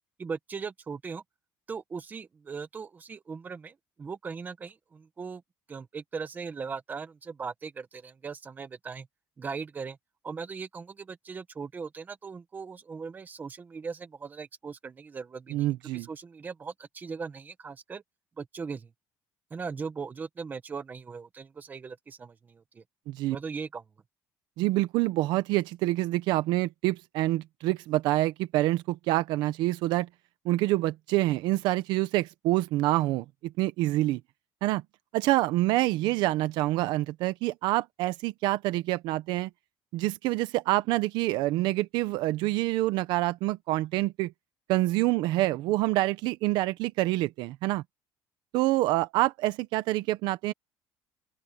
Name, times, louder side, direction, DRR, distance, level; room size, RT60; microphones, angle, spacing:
voice 1, 0.2-1.2 1.7-5.4 5.7-9.1 9.4-10.0 10.2-18.0 18.4-18.9 19.5-22.8 23.3-23.8, right 5 dB, 25° right, 1.6 m, -39 dB
voice 2, 15.5-16.1 23.1-23.4 24.6-30.1 30.4-34.2 34.6-34.8 35.1-39.5 39.9-44.3 44.7-47.8 48.5-50.5, right 17 dB, 80° right, 1.0 m, -26 dB
open air
cardioid pair, 155°, 8 cm